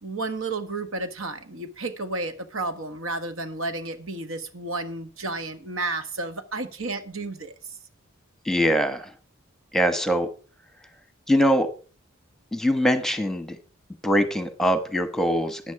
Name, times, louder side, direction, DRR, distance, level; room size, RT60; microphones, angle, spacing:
voice 1, 0.0-7.7, right 2 dB, 75° right, 10 dB, 1.5 m, -32 dB
voice 2, 8.4-9.1 9.7-10.3 11.3-11.7 12.5-13.6 14.0-15.7, equal, ahead, 9 dB, 1.2 m, -22 dB
13.5 x 9.4 x 4.8 m, 0.38 s
head